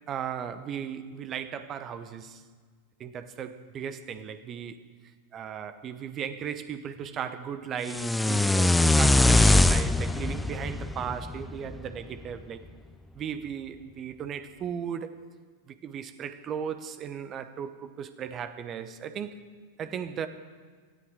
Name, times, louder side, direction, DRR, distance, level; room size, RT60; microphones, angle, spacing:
voice 1, 0.1-2.4 3.0-4.8 5.3-12.6 13.1-15.2 15.7-19.4 19.8-20.3, right 8 dB, 30° right, 11 dB, 0.9 m, -36 dB
sound 1, 7.9-12.0, left 2 dB, 5° left, 0.4 m, -22 dB
18.0 x 13.0 x 4.9 m, 1.5 s
figure-of-eight pair, 90°, 0 cm